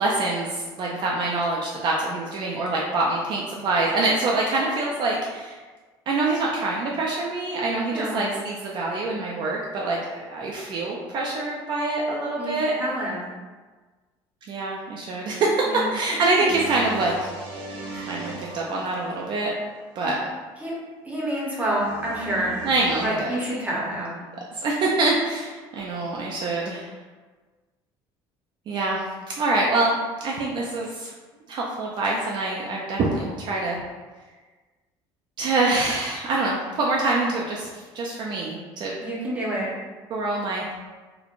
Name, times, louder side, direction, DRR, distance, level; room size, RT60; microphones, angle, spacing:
voice 1, 0.0-5.6 6.1-12.8 14.5-17.2 17.9-19.5 20.0-20.2 22.6-23.4 24.5-26.9 28.7-29.0 29.4-30.0 30.2-31.1 31.5-33.8 35.4-37.7 37.9-39.0 40.1-40.6, right 2 dB, 50° right, -3 dB, 0.4 m, -25 dB
voice 2, 7.9-8.3 12.4-13.3 15.6-15.9 16.4-16.5 17.9-18.4 20.0-20.2 20.6-20.7 21.0-22.6 23.0-24.2 39.0-39.7, right 1 dB, 15° right, -5 dB, 0.8 m, -29 dB
sound 1, 16.5-19.7 21.7-23.1, right 2 dB, 65° right, 0.7 m, -38 dB
2.8 x 2.1 x 2.4 m, 1.3 s
cardioid pair, 115°, 10 cm